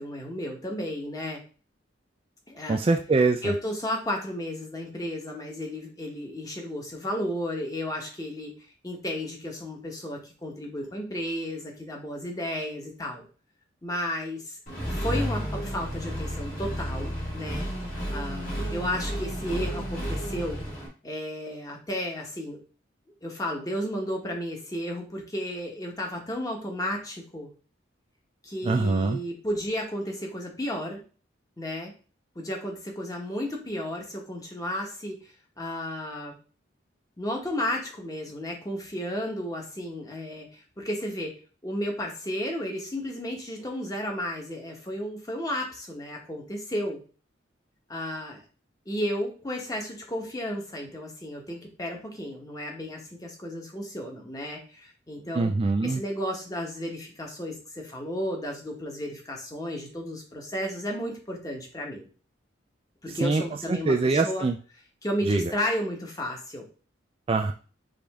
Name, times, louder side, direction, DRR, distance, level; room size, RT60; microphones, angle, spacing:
voice 1, 0.0-1.4 2.5-2.8 3.4-13.3 13.8-14.6 14.9-17.7 18.1-20.6 21.0-22.6 23.2-27.5 28.4-31.0 31.6-31.9 32.3-36.3 37.2-41.3 41.6-47.0 47.9-48.4 48.9-55.5 55.8-62.1 63.0-64.5 65.0-66.6, left 1 dB, 20° left, 1 dB, 1.0 m, -33 dB
voice 2, 2.7-3.5 28.6-29.2 55.4-56.0 63.2-63.4 63.7-64.5 65.2-65.5 67.3-67.5, right 3 dB, 30° right, 4 dB, 0.3 m, -23 dB
Accelerating revving vroom, 14.7-20.9, equal, 45° left, 1.7 m, -32 dB
5.0 x 2.6 x 3.5 m, 0.36 s
head